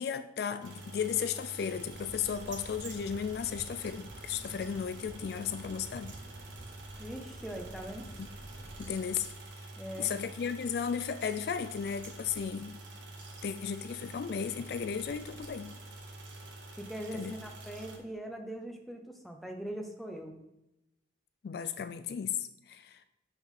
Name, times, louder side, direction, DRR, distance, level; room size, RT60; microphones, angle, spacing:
voice 1, 0.0-6.1 8.8-9.3 10.0-12.8 13.4-15.7 17.1-17.3 21.4-23.0, left 7 dB, 55° left, 12 dB, 0.3 m, -35 dB
sound 1, 0.6-18.0, right 2 dB, 90° right, 1.4 m, -47 dB
sound 2, 1.7-9.0, right 1 dB, 40° right, 0.7 m, -50 dB
voice 2, 7.0-8.1 9.8-10.1 16.8-20.3, right 1 dB, ahead, 2 dB, 0.7 m, -41 dB
6.1 x 6.0 x 3.7 m, 0.93 s
head